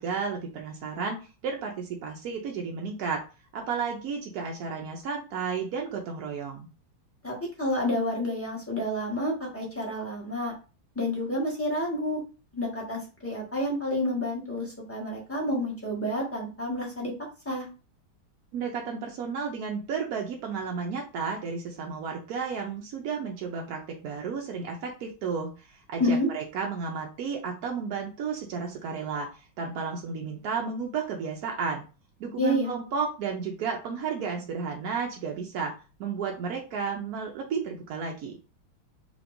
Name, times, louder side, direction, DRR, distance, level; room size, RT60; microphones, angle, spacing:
voice 1, 0.0-3.2 3.5-6.7 18.5-29.3 29.6-31.8 32.2-35.7 36.0-38.4, right 5 dB, 75° right, 1 dB, 0.8 m, -32 dB
voice 2, 7.2-10.5 10.9-12.2 12.5-17.1 17.4-17.7 26.0-26.3 32.4-32.7, left 1 dB, 10° left, -4 dB, 1.1 m, -29 dB
5.0 x 2.8 x 2.6 m, 0.33 s
omnidirectional pair, 2.3 m